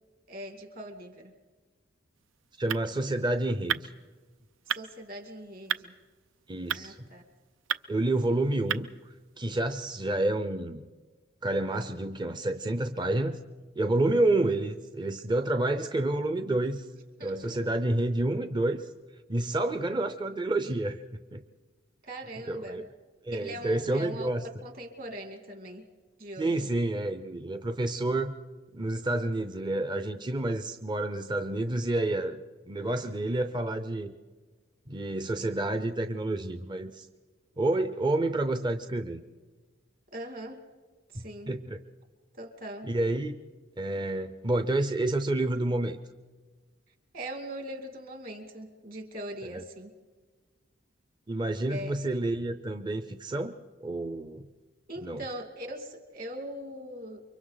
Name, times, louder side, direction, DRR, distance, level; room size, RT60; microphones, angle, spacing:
voice 1, 0.3-1.3 4.7-5.9 6.7-7.2 17.2-17.5 22.0-22.8 23.3-24.3 24.6-25.9 26.2-26.7 40.1-40.6 41.1-41.5 42.4-42.9 47.1-49.9 51.7-51.9 54.9-57.2, right 1 dB, 50° right, 5 dB, 2.4 m, -41 dB
sound 1, 2.1-9.4, right 9 dB, 80° right, 0.6 m, -38 dB
voice 2, 2.6-3.9 6.5-7.0 7.9-8.9 9.4-10.8 11.4-13.4 13.8-16.9 17.2-18.9 19.3-21.0 21.3-21.4 22.5-22.9 23.2-24.5 26.4-28.3 28.7-32.4 32.7-34.1 34.9-37.1 37.6-39.2 41.1-41.8 42.9-43.4 43.8-46.0 49.4-49.6 51.3-53.5 53.8-54.4 55.0-55.2, right 2 dB, 25° right, 9 dB, 0.6 m, -29 dB
29.0 x 24.0 x 4.0 m, 1.4 s
head